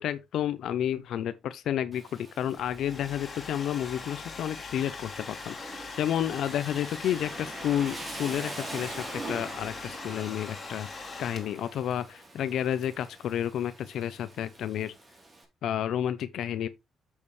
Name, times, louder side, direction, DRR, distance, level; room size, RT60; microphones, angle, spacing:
voice 1, 0.0-14.9 15.6-16.7, left 10 dB, 75° left, 0.6 m, -31 dB
Rain, 1.9-15.4, right 2 dB, 30° right, 3.3 m, -44 dB
Domestic sounds home sounds, 2.6-11.8, left 4 dB, 35° left, 2.4 m, -42 dB
8.6 x 6.5 x 3.2 m
cardioid pair, 90°, 0 cm